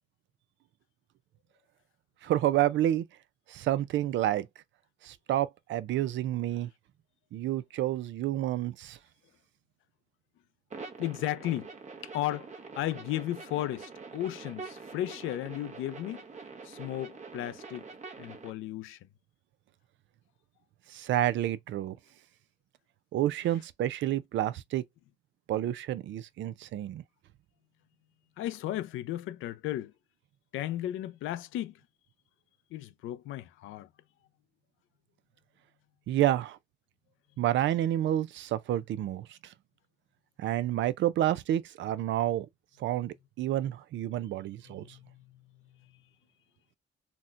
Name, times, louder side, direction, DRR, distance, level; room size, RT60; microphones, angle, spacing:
voice 1, 2.2-3.0 3.5-4.5 5.0-6.7 7.3-9.0 20.9-22.0 23.1-24.8 25.5-27.0 36.1-36.6 37.4-39.3 40.4-42.5 42.8-44.9, right 12 dB, 70° right, 0.4 m, -29 dB
sound 1, 10.7-18.5, right 4 dB, 35° right, 0.9 m, -45 dB
voice 2, 11.0-11.7 12.0-16.2 16.6-17.9 18.2-19.1 28.4-29.9 30.5-31.7 32.7-33.9 44.7-45.4 45.8-45.9, left 13 dB, 85° left, 0.5 m, -35 dB
4.1 x 2.2 x 2.4 m
cardioid pair, 90°, 20 cm